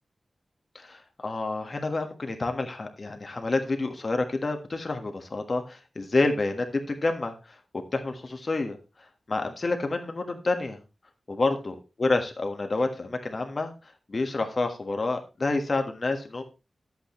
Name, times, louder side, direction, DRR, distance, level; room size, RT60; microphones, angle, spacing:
voice 1, 0.7-7.6 7.9-10.8 11.3-16.4, left 3 dB, 40° left, 5 dB, 1.5 m, -29 dB
11.0 x 8.4 x 3.1 m, 0.28 s
wide cardioid pair, 130°, 0 cm